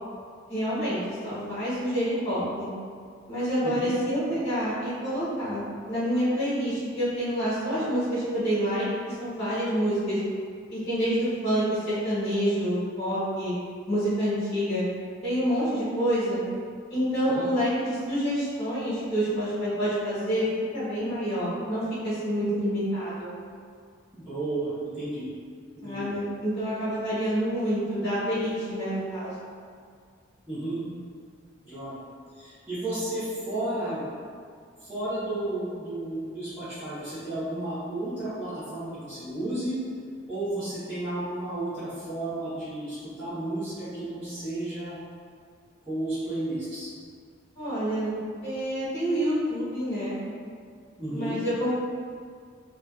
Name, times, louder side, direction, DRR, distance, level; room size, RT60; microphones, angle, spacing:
voice 1, 0.5-2.7 3.3-10.2 10.7-13.5 13.9-14.8 15.2-16.4 16.9-20.4 20.7-23.3 25.8-29.3 47.5-48.2 48.4-50.1 51.1-51.7, equal, 40° left, -13 dB, 1.0 m, -27 dB
voice 2, 24.1-25.3 25.7-26.1 30.5-30.8 31.6-32.0 32.4-34.0 34.8-39.8 40.3-45.0 45.9-46.9 51.0-51.4, right 1 dB, 10° right, -18 dB, 0.8 m, -32 dB
2.4 x 2.3 x 2.3 m, 2.1 s
head